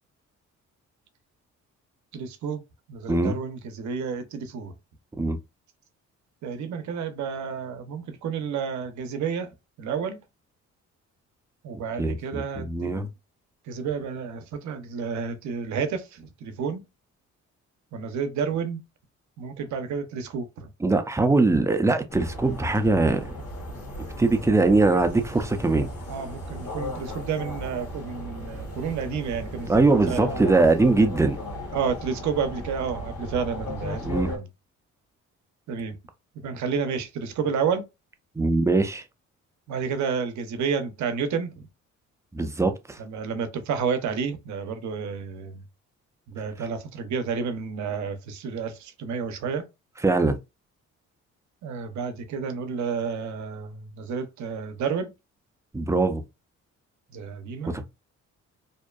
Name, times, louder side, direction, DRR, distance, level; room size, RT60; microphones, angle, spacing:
voice 1, 2.1-2.6 2.9-4.7 6.4-9.5 9.8-10.2 11.6-13.1 13.7-16.8 17.9-18.8 19.4-20.7 26.1-30.6 31.7-34.0 34.3-34.5 35.7-36.0 36.4-37.8 39.7-41.5 43.0-45.6 46.3-49.6 51.6-55.1 57.1-57.9, right 6 dB, 70° right, 0.6 m, -30 dB
voice 2, 12.0-13.1 20.8-23.2 24.2-25.9 29.7-31.4 34.0-34.3 38.4-39.0 42.3-43.0 50.0-50.4 55.7-56.2 57.7-57.9, right 3 dB, 10° right, 0.4 m, -22 dB
sound 1, 22.1-34.4, left 1 dB, 55° left, 0.9 m, -36 dB
2.6 x 2.2 x 2.3 m
cardioid pair, 90°, 30 cm